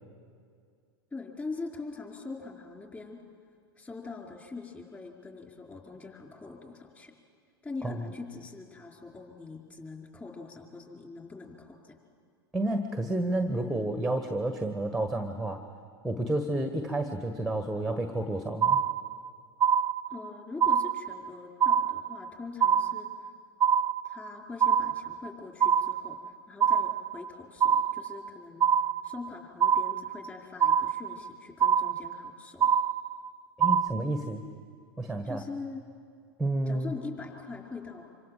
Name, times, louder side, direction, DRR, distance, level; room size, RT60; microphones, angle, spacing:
voice 1, 1.1-3.2 3.8-7.1 7.6-12.0 20.1-23.3 24.0-28.6 29.0-32.7 35.2-35.8 36.7-38.1, left 4 dB, 15° left, 1 dB, 4.9 m, -42 dB
voice 2, 12.5-15.6 16.0-18.8 33.6-34.4 35.0-35.4 36.4-36.9, right 1 dB, ahead, 7 dB, 1.6 m, -30 dB
sound 1, 18.6-19.3 19.6-20.3 20.6-21.3 21.6-22.3 22.6-23.3 23.6-24.3 24.6-25.3 25.6-26.3 26.6-27.3 27.6-28.3 28.6-29.3 29.6-30.3 30.6-31.3 31.6-32.3 32.6-33.3 33.6-33.9, right 8 dB, 20° right, 0.7 m, -24 dB
26.5 x 26.0 x 7.6 m, 2.2 s
hypercardioid pair, 95°, 13 cm